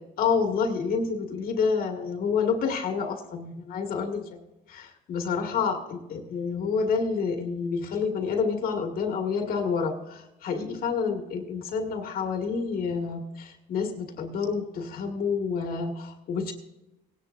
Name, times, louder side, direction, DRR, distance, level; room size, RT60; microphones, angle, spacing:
voice 1, 0.2-4.4 4.7-16.5, left 5 dB, 60° left, 3 dB, 1.7 m, -28 dB
18.5 x 10.5 x 2.5 m, 0.92 s
cardioid pair, 110°, 17 cm